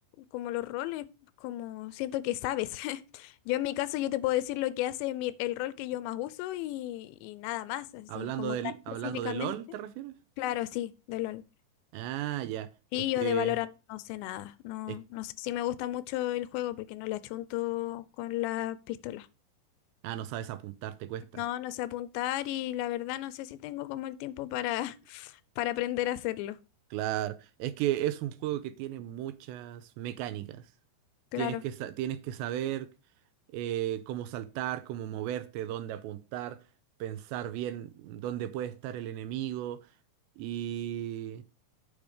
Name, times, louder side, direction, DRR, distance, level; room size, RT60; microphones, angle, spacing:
voice 1, 0.3-1.1 1.4-8.7 9.0-9.5 10.4-11.4 12.9-19.3 21.3-26.6 31.3-31.6, left 15 dB, 90° left, 2.8 m, -33 dB
voice 2, 8.1-10.2 11.9-12.7 13.2-13.6 14.9-15.0 20.0-21.4 26.9-30.6 31.4-32.9 33.5-36.6 37.0-39.9 40.4-41.4, right 12 dB, 90° right, 2.9 m, -35 dB
8.9 x 5.2 x 4.9 m
omnidirectional pair, 5.0 m